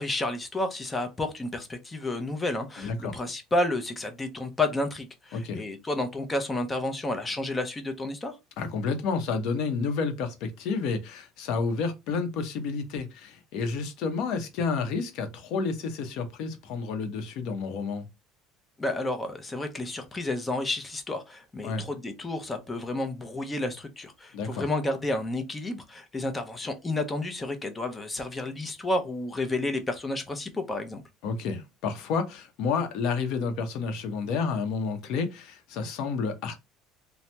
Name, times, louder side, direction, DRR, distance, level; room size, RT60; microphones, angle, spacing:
voice 1, 0.0-8.4 18.8-31.0, left 2 dB, 15° left, 0.5 m, -31 dB
voice 2, 2.8-3.2 5.3-5.6 8.6-18.1 21.6-21.8 24.3-24.6 31.2-36.6, left 5 dB, 65° left, 0.7 m, -30 dB
2.8 x 2.0 x 3.2 m
cardioid pair, 150°, 0 cm